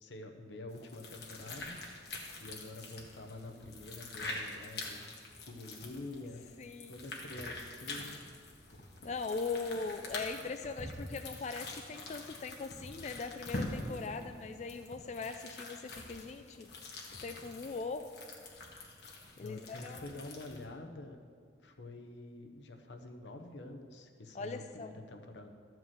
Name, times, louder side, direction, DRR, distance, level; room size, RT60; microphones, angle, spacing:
voice 1, 0.0-1.8 2.4-5.1 5.4-6.5 6.9-8.2 19.4-21.2 21.6-25.5, left 2 dB, 85° left, 4 dB, 0.9 m, -47 dB
sound 1, 0.7-20.7, left 2 dB, 65° left, 1.5 m, -45 dB
voice 2, 6.6-6.9 9.0-16.7 17.2-18.0 19.4-20.1 24.3-24.9, left 4 dB, 40° left, 8 dB, 0.3 m, -40 dB
12.5 x 4.6 x 7.6 m, 2.1 s
head